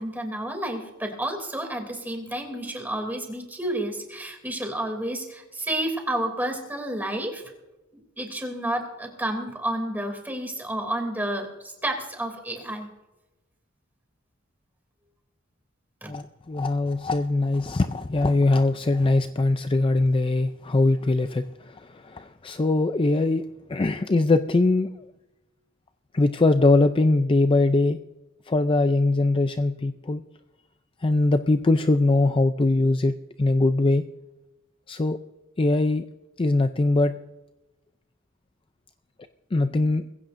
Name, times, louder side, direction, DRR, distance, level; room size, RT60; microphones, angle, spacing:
voice 1, 0.0-7.4 7.9-12.9 16.0-16.1, right 1 dB, 10° right, 3 dB, 2.8 m, -30 dB
voice 2, 16.1-23.4 23.7-24.9 26.1-28.0 28.5-30.2 31.0-33.1 33.4-34.0 34.9-35.2 35.6-36.0 36.4-37.2 39.5-40.0, left 2 dB, 25° left, 9 dB, 0.4 m, -21 dB
21.0 x 16.0 x 2.6 m, 1.0 s
head